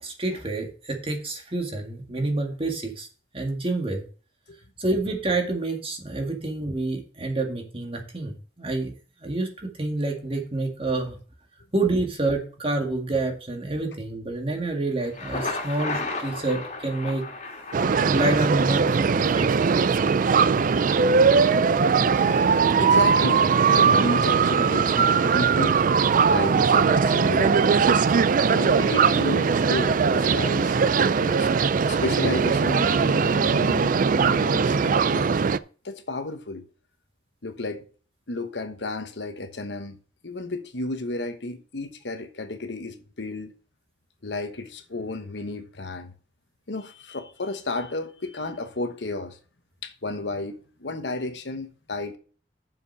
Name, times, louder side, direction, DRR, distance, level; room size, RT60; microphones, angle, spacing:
voice 1, 0.0-3.1 3.3-4.0 4.8-8.9 9.2-11.1 11.7-17.2 18.1-19.5, right 2 dB, 30° right, 2.0 m, -28 dB
Thunder, 15.0-19.0, left 3 dB, 45° left, 2.2 m, -34 dB
sound 1, 17.7-35.6, right 5 dB, 50° right, 0.4 m, -20 dB
voice 2, 22.2-25.8 26.3-28.1 28.5-30.8 31.2-31.5 31.9-35.3 35.8-36.6 37.4-37.8 38.3-40.0 40.2-43.5 44.2-46.1 46.7-49.4 49.8-52.2, left 2 dB, 75° left, 1.2 m, -32 dB
7.1 x 5.5 x 6.5 m
head